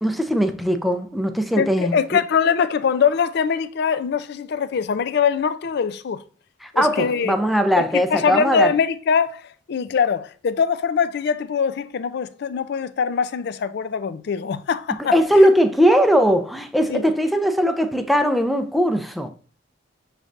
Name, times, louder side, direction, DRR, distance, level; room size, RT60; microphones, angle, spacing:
voice 1, 0.0-2.2 6.6-8.7 15.1-19.3, equal, ahead, 0.4 m, -19 dB
voice 2, 1.6-6.2 6.7-7.4 7.8-7.9 8.1-9.4 9.7-15.1 16.9-17.1, left 6 dB, 60° left, 0.4 m, -22 dB
6.3 x 3.2 x 2.5 m
head